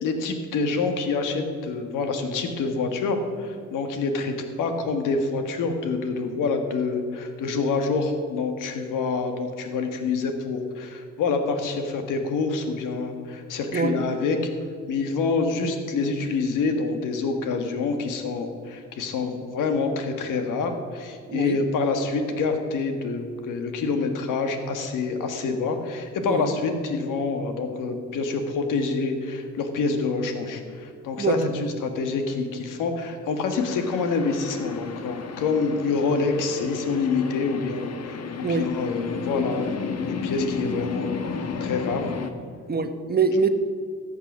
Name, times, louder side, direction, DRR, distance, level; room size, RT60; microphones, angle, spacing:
voice 1, 0.0-14.4 14.9-42.1, left 4 dB, 85° left, 6 dB, 1.6 m, -27 dB
sound 1, 33.6-42.3, left 5 dB, 55° left, 1.2 m, -33 dB
voice 2, 42.7-43.5, right 5 dB, 30° right, 7 dB, 1.2 m, -24 dB
14.0 x 8.1 x 6.2 m, 2.1 s
cardioid pair, 75°, 31 cm